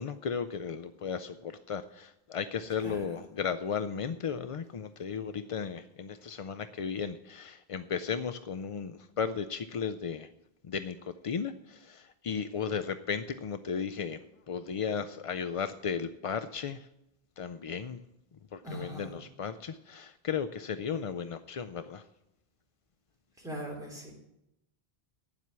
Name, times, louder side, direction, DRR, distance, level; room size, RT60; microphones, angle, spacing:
voice 1, 0.0-10.3 10.6-16.9 17.4-18.0 18.5-22.0, left 6 dB, 60° left, 11 dB, 0.3 m, -35 dB
voice 2, 2.8-3.1 18.6-19.1 23.4-24.1, equal, 5° right, -3 dB, 3.1 m, -40 dB
9.6 x 7.5 x 8.2 m, 0.86 s
omnidirectional pair, 1.1 m